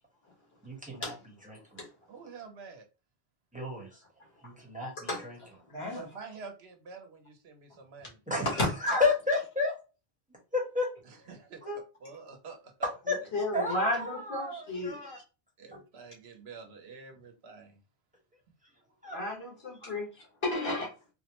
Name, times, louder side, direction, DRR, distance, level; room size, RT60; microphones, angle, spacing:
voice 1, 0.6-1.1 1.5-1.8 3.5-4.0 4.4-5.4 8.3-8.5 8.8-9.7 10.5-10.9 11.6-11.8 12.8-13.2 13.5-15.2 19.0-19.2, left 3 dB, 10° right, 1.1 m, -31 dB
voice 2, 2.1-2.8 5.9-8.6 11.0-12.9 15.6-17.8, right 5 dB, 80° right, 1.0 m, -48 dB
voice 3, 5.0-6.1 8.4-9.0 9.3-9.4 13.1-15.2 19.1-20.9, left 2 dB, 70° left, 1.8 m, -33 dB
3.8 x 2.1 x 2.9 m
omnidirectional pair, 1.1 m